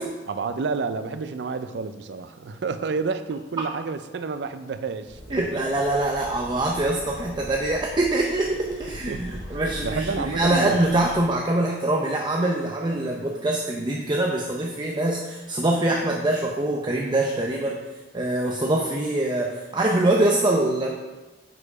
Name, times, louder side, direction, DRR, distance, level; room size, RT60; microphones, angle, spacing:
voice 1, 0.3-5.4 9.1-10.8, right 4 dB, 70° right, 11 dB, 0.4 m, -30 dB
sound 1, 5.0-11.2, equal, 35° left, 2.2 m, -40 dB
voice 2, 5.3-17.8 18.1-20.9, right 1 dB, 25° right, -1 dB, 0.6 m, -24 dB
6.8 x 4.8 x 4.9 m, 1.2 s
head